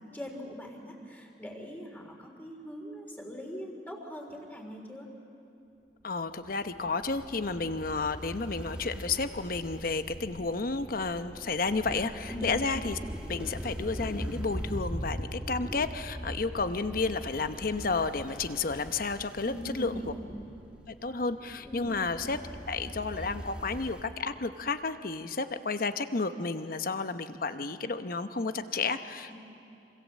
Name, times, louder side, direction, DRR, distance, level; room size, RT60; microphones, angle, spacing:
voice 1, 0.0-5.1 12.3-12.5 19.4-20.2 21.7-21.9 29.3-29.4, equal, 10° left, 1 dB, 3.6 m, -41 dB
voice 2, 6.0-13.0 13.3-19.9 20.9-22.4 22.7-29.3, left 4 dB, 55° left, 10 dB, 0.9 m, -31 dB
sound 1, 6.4-24.0, equal, 5° right, 1.3 m, -41 dB
27.0 x 25.5 x 7.5 m, 2.7 s
head